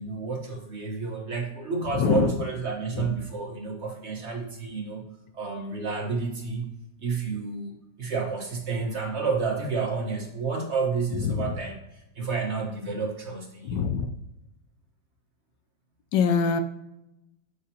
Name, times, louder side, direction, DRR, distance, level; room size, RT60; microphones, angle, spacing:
voice 1, 0.0-5.1 5.3-6.7 7.0-7.7 8.0-11.8 12.1-13.8, right 4 dB, 40° right, -1 dB, 1.4 m, -30 dB
voice 2, 2.0-2.3 3.0-3.1 11.3-11.5 13.6-14.1 16.1-16.6, left 6 dB, 75° left, 8 dB, 1.3 m, -23 dB
8.3 x 5.7 x 2.8 m, 0.89 s
omnidirectional pair, 2.0 m